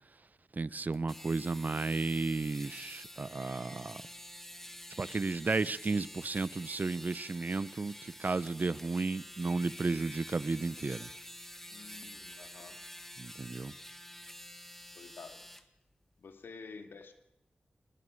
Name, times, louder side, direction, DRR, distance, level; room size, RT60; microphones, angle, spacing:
voice 1, 0.5-4.0 5.0-11.1 13.2-13.7, right 3 dB, 50° right, 0.7 m, -33 dB
sound 1, 0.9-15.6, equal, 10° left, 2.1 m, -48 dB
voice 2, 11.7-12.8 15.0-15.4 16.2-17.1, left 4 dB, 85° left, 2.3 m, -49 dB
20.5 x 20.0 x 6.6 m
cardioid pair, 45°, 4 cm